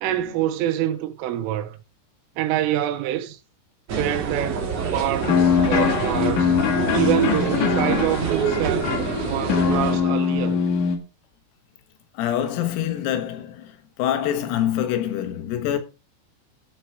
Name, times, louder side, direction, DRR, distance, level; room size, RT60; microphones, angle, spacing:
voice 1, 0.0-1.8 2.4-3.4 3.9-6.6 6.9-8.9 9.2-10.6, right 12 dB, 85° right, 3.3 m, -26 dB
sound 1, 3.9-10.0, right 5 dB, 45° right, 2.2 m, -26 dB
sound 2, 5.2-11.0, left 7 dB, 60° left, 2.3 m, -22 dB
voice 2, 12.2-15.8, left 11 dB, 90° left, 4.2 m, -25 dB
13.5 x 6.2 x 4.6 m
omnidirectional pair, 6.0 m